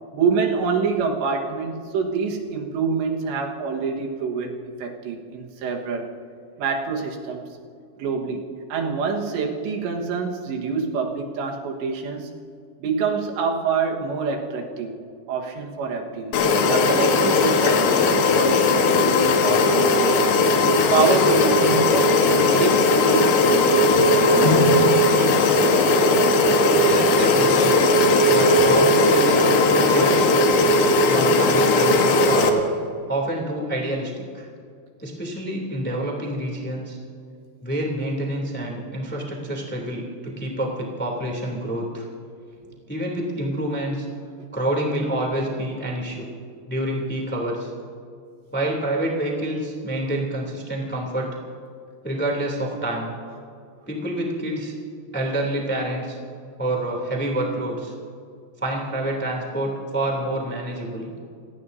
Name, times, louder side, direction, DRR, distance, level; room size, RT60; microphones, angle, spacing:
voice 1, 0.1-6.1 6.6-7.4 8.0-12.3 12.8-15.0 15.3-20.2 20.5-24.9 42.7-42.8, right 5 dB, 90° right, 1 dB, 3.7 m, -26 dB
sound 1, 16.3-32.5, left 2 dB, 75° left, 3.3 m, -17 dB
voice 2, 26.8-27.7 28.3-30.5 31.1-32.7 33.1-34.5 35.0-37.0 37.6-42.0 42.9-44.0 44.5-46.3 46.7-47.7 48.5-51.3 52.0-53.1 53.9-54.7 55.1-56.2 56.6-57.9 58.6-61.1, right 1 dB, 5° left, -1 dB, 1.8 m, -27 dB
28.0 x 18.0 x 2.7 m, 2.3 s
omnidirectional pair, 5.0 m